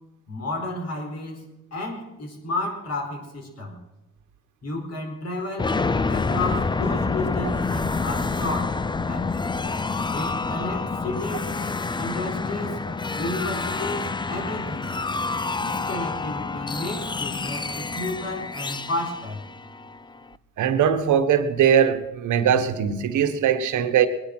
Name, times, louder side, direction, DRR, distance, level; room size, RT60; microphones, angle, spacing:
voice 1, 0.3-3.8 4.6-5.7 6.1-8.8 9.1-9.4 10.1-11.5 12.0-12.8 13.1-14.9 15.6-19.4, left 1 dB, 55° left, 4.5 m, -32 dB
sound 1, 5.6-20.3, left 4 dB, 15° left, 0.4 m, -28 dB
voice 2, 20.6-24.1, right 8 dB, 80° right, 1.4 m, -20 dB
21.0 x 10.0 x 6.1 m
cardioid pair, 90°, 30 cm